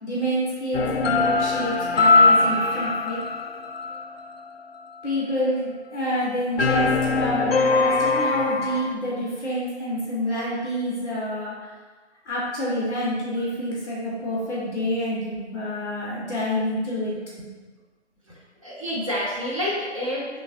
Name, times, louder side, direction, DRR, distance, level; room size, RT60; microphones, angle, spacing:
voice 1, 0.0-3.2 5.0-11.7 12.2-17.5, equal, 5° left, -9 dB, 1.0 m, -27 dB
sound 1, 0.7-4.4 6.6-8.9, left 3 dB, 60° left, 0.5 m, -21 dB
voice 2, 2.2-2.7 18.3-20.4, left 1 dB, 30° right, -6 dB, 0.9 m, -29 dB
5.5 x 3.1 x 2.5 m, 1.4 s
figure-of-eight pair, 160°, 35 cm